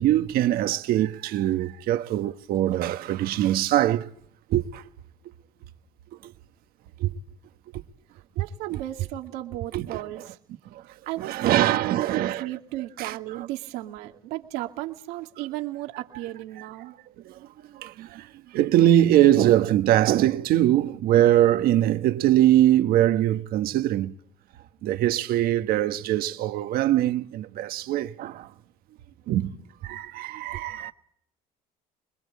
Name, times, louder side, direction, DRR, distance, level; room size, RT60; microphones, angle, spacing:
voice 1, 0.0-4.1 4.5-4.8 6.2-6.3 7.0-7.2 9.7-10.2 10.7-10.8 11.2-12.5 13.0-13.5 17.2-24.2 24.8-28.5 29.3-29.6 29.8-30.9, right 13 dB, 70° right, 1.4 m, -22 dB
voice 2, 8.1-10.4 10.9-16.9, right 16 dB, 85° right, 2.4 m, -35 dB
26.5 x 21.5 x 8.3 m
cardioid pair, 100°, 16 cm